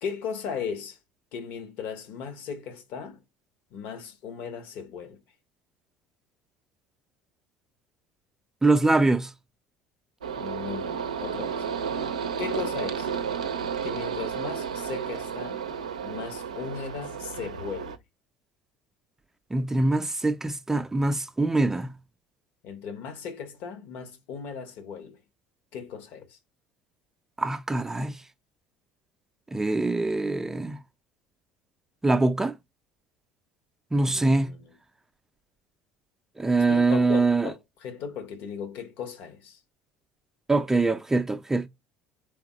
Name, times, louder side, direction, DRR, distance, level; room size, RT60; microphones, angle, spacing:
voice 1, 0.0-1.0 1.3-3.2 3.7-5.2 8.8-9.2 10.3-11.9 12.4-13.1 13.8-15.7 16.0-18.0 22.6-25.2 25.7-26.4 33.9-34.7 36.5-39.6, left 6 dB, 60° left, 1.0 m, -37 dB
voice 2, 8.6-9.3 19.5-21.9 27.4-28.1 29.5-30.8 32.0-32.5 33.9-34.5 36.4-37.5 40.5-41.7, right 2 dB, 15° right, 0.4 m, -23 dB
sound 1, 10.2-18.0, right 7 dB, 85° right, 0.5 m, -32 dB
3.5 x 3.4 x 2.9 m
hypercardioid pair, 65°, 4 cm